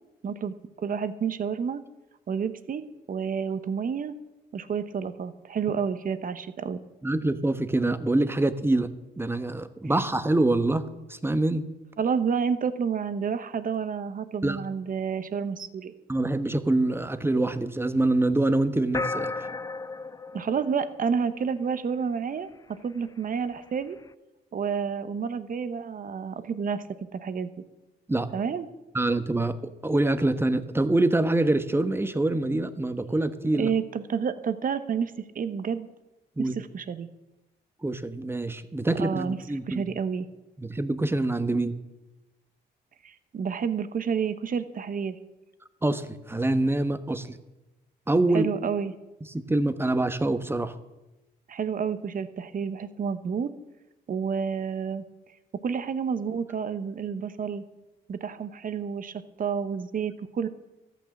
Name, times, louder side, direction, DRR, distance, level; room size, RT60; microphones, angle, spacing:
voice 1, 0.2-1.8 2.3-2.8 3.1-4.2 4.5-6.8 12.0-15.9 20.3-24.0 24.5-26.8 27.1-27.6 28.3-28.7 33.6-35.9 36.4-37.1 39.0-39.4 39.7-40.3 43.0-45.2 48.3-48.9 51.5-53.5 54.1-55.0 55.6-57.6 58.1-59.1 59.4-60.5, right 6 dB, 50° right, 12 dB, 1.0 m, -29 dB
voice 2, 7.0-10.8 11.1-11.6 14.4-14.6 16.1-19.3 28.1-28.3 28.9-33.7 36.4-36.5 37.8-39.8 40.6-41.8 45.8-47.3 48.1-48.5 49.3-50.8, right 2 dB, 15° right, 10 dB, 1.1 m, -25 dB
sound 1, 18.9-21.6, left 3 dB, 20° left, 0.4 m, -33 dB
13.5 x 9.2 x 7.2 m, 1.0 s
cardioid pair, 70°, 18 cm